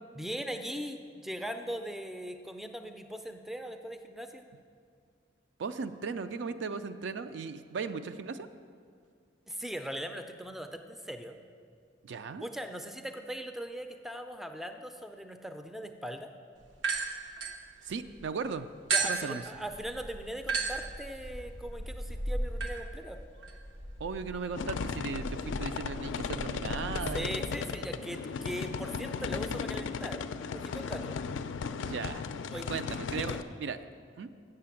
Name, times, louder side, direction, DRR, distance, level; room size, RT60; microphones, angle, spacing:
voice 1, 0.2-4.5 9.5-11.4 12.4-16.3 18.9-23.2 26.9-30.2 30.5-31.2 32.5-32.8 33.2-33.4, equal, ahead, 6 dB, 0.4 m, -40 dB
voice 2, 5.6-8.5 12.0-12.5 17.8-18.7 19.0-19.4 24.0-27.5 31.8-32.3 32.7-33.3 33.6-33.8 34.2-34.3, right 5 dB, 65° right, 10 dB, 0.4 m, -37 dB
sound 1, 16.7-18.2 18.9-27.2, right 3 dB, 90° right, 0.9 m, -36 dB
sound 2, 24.5-33.4, left 5 dB, 80° left, 0.4 m, -36 dB
7.6 x 6.6 x 7.1 m, 2.1 s
head